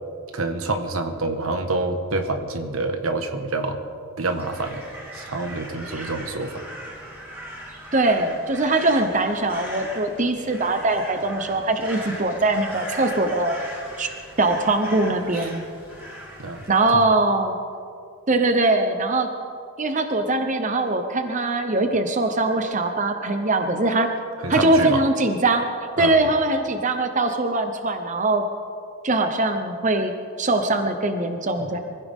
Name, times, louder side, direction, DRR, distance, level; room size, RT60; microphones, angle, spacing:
voice 1, 0.3-3.8 4.2-4.8 5.1-6.7 16.4-16.6 24.4-25.0 26.0-26.3 31.6-31.7, right 2 dB, 80° right, 6 dB, 1.5 m, -27 dB
Crow, 4.3-16.9, equal, 10° right, 3.9 m, -39 dB
voice 2, 7.9-13.6 14.0-14.1 14.4-15.6 16.7-17.6 18.3-19.3 19.8-24.1 24.5-25.7 26.0-28.4 29.0-30.1 30.4-31.8, right 2 dB, 35° right, 6 dB, 0.9 m, -22 dB
24.5 x 16.0 x 3.7 m, 2.4 s
head